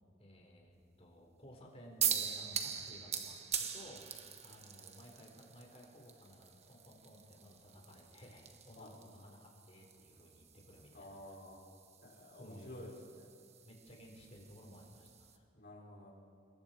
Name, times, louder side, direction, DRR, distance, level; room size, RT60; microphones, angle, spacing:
voice 1, 0.2-11.2 12.4-12.8 13.6-15.5, equal, 30° left, 0 dB, 4.3 m, -56 dB
sound 1, 2.0-15.4, right 8 dB, 35° right, 1.3 m, -43 dB
voice 2, 10.9-11.7 12.0-13.3 15.5-16.1, left 1 dB, 50° left, -4 dB, 5.9 m, -51 dB
27.5 x 21.5 x 4.6 m, 2.4 s
head